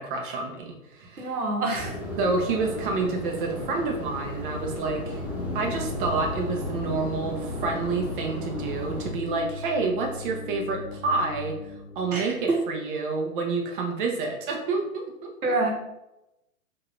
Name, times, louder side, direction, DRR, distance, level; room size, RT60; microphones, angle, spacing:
voice 1, 0.0-1.4 2.2-5.2 5.5-15.5, right 3 dB, 35° right, 1 dB, 0.9 m, -29 dB
voice 2, 1.2-1.9 12.1-12.3 15.4-15.7, right 2 dB, 85° right, 0 dB, 1.4 m, -26 dB
sound 1, 1.7-9.1, equal, 5° right, 0.6 m, -35 dB
sound 2, 4.6-12.5, left 2 dB, 65° left, 0.7 m, -37 dB
5.1 x 2.8 x 2.6 m, 0.87 s
figure-of-eight pair, 120°, 43 cm